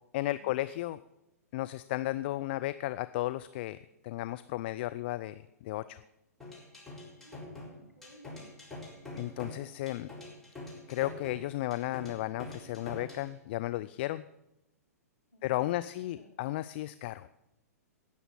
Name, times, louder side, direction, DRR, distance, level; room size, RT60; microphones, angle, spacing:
voice 1, 0.1-1.0 1.5-3.8 4.0-6.0 9.2-10.1 10.9-14.2 15.4-17.3, left 16 dB, 40° left, 13 dB, 0.5 m, -34 dB
sound 1, 6.4-13.3, left 2 dB, 5° left, 4.2 m, -45 dB
voice 2, 7.2-8.4 15.3-15.9 16.2-16.3, right 1 dB, 80° left, -1 dB, 4.4 m, -55 dB
18.0 x 7.0 x 7.7 m, 0.91 s
figure-of-eight pair, 115°, 9 cm